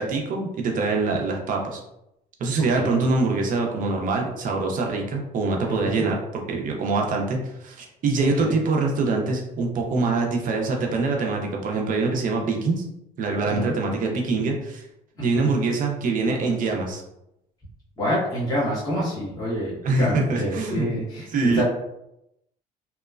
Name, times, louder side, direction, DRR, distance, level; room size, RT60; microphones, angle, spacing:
voice 1, 0.0-1.8 2.4-12.8 13.2-14.8 15.2-17.0 19.8-21.0 21.3-21.6, right 3 dB, 50° right, 1 dB, 0.6 m, -24 dB
voice 2, 2.7-3.0 5.7-6.0 8.4-8.6 13.4-13.7 15.2-15.5 18.0-21.6, equal, 20° left, -8 dB, 1.2 m, -27 dB
2.9 x 2.1 x 2.4 m, 0.84 s
cardioid pair, 110°, 17 cm